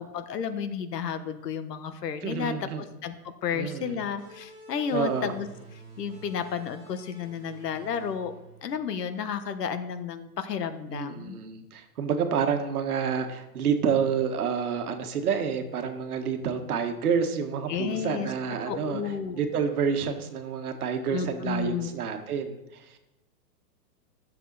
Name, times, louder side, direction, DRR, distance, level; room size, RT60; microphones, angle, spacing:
voice 1, 0.0-2.5 3.0-5.5 6.0-8.3 8.6-11.4 17.7-18.3 18.6-19.4 21.1-21.9, left 7 dB, 85° left, 10 dB, 1.3 m, -32 dB
voice 2, 2.2-2.8 3.5-4.0 4.9-5.3 10.9-19.0 19.3-23.0, right 6 dB, 65° right, 6 dB, 1.6 m, -29 dB
sound 1, 4.2-9.4, right 2 dB, 20° right, 2.7 m, -49 dB
12.5 x 7.4 x 4.1 m, 0.92 s
hypercardioid pair, 175°, 47 cm